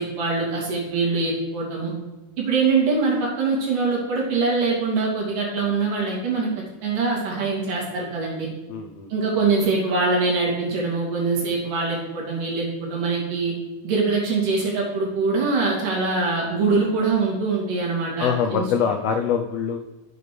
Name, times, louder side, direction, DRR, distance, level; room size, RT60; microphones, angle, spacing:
voice 1, 0.0-1.9 2.4-6.5 6.8-8.5 9.1-13.5 13.8-18.6, right 4 dB, 75° right, -4 dB, 4.3 m, -23 dB
voice 2, 8.7-9.1 18.2-19.8, left 7 dB, 85° left, 3 dB, 1.4 m, -24 dB
11.0 x 8.4 x 3.3 m, 1.2 s
omnidirectional pair, 3.8 m